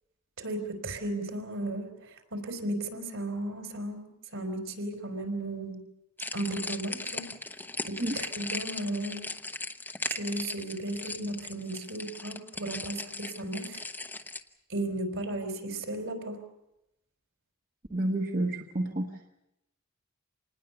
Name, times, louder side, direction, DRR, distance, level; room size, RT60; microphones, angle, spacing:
voice 1, 0.4-5.8 6.3-7.2 7.9-9.2 10.1-13.8 14.7-16.4, right 1 dB, 70° right, 5 dB, 4.4 m, -35 dB
sound 1, 6.2-14.4, left 2 dB, 10° left, 0.9 m, -38 dB
voice 2, 17.9-19.3, right 1 dB, 40° right, 1 dB, 1.3 m, -30 dB
27.0 x 19.5 x 7.0 m, 0.89 s
head